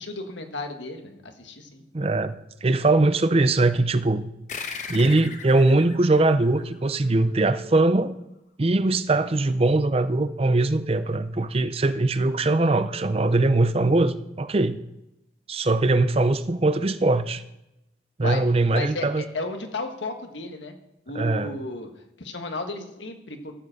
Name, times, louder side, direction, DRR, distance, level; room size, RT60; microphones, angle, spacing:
voice 1, 0.0-1.9 18.2-21.9 22.2-23.5, left 2 dB, 80° left, 5 dB, 1.5 m, -34 dB
voice 2, 1.9-4.3 4.9-8.1 8.6-14.8 15.5-17.4 18.2-19.2 21.1-21.6, right 2 dB, 30° right, 12 dB, 0.5 m, -21 dB
sound 1, 4.5-7.5, left 5 dB, 40° left, 1.0 m, -39 dB
Telephone, 7.0-8.0 9.9-11.0 12.9-13.9, left 1 dB, 80° right, 1.2 m, -43 dB
13.5 x 7.8 x 6.4 m, 0.89 s
head